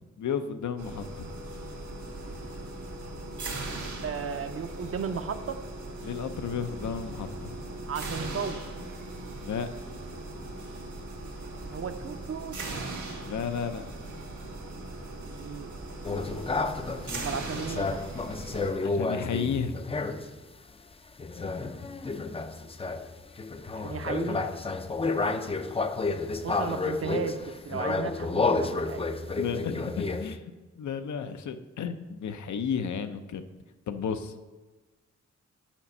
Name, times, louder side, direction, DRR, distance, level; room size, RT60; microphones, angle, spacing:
voice 1, 0.2-1.3 6.0-7.5 9.4-9.7 13.2-13.8 18.8-19.7 29.4-30.4 30.8-33.4 33.9-34.3, left 7 dB, 80° left, 9 dB, 0.6 m, -33 dB
sound 1, 0.8-18.7, right 2 dB, 85° right, 1.5 m, -39 dB
voice 2, 4.0-5.6 7.9-8.6 11.6-12.6 15.3-15.7 17.2-18.0 23.8-24.5 26.4-27.4 27.6-29.1, right 6 dB, 50° right, 9 dB, 0.6 m, -34 dB
sound 2, 16.0-20.4 21.2-30.4, left 3 dB, 20° left, 0.4 m, -31 dB
7.3 x 5.0 x 5.4 m, 1.3 s
wide cardioid pair, 95°, 29 cm